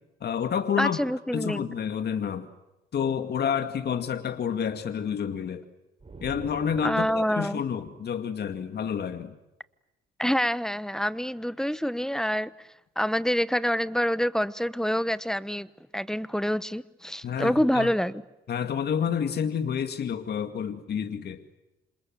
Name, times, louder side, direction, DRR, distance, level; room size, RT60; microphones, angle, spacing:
voice 1, 0.2-1.0 1.3-2.5 2.9-5.6 6.2-9.4 17.2-17.9 18.5-21.4, left 7 dB, 55° left, 2.2 m, -29 dB
voice 2, 0.8-1.7 6.8-7.6 10.2-12.5 13.0-15.7 15.9-18.2, equal, 5° left, 1.1 m, -26 dB
sound 1, 6.0-7.6, right 3 dB, 30° right, 5.5 m, -44 dB
28.0 x 27.0 x 7.7 m
cardioid pair, 90°, 20 cm